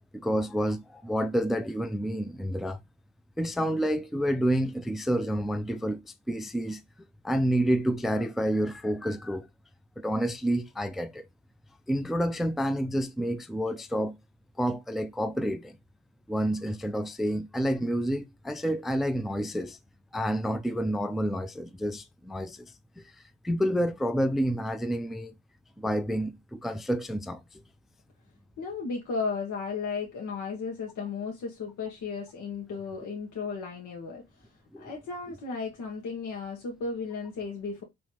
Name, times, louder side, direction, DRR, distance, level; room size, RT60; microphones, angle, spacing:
voice 1, 0.1-2.8 3.4-6.8 7.2-9.5 10.0-11.2 11.9-14.2 14.6-15.8 16.3-19.8 20.1-22.7 23.0-23.1 23.4-25.3 25.8-27.4 34.7-34.9, equal, ahead, 0.4 m, -29 dB
voice 2, 28.6-34.5 34.8-37.8, left 4 dB, 75° left, 1.3 m, -35 dB
4.6 x 3.0 x 2.9 m
cardioid pair, 90°, 30 cm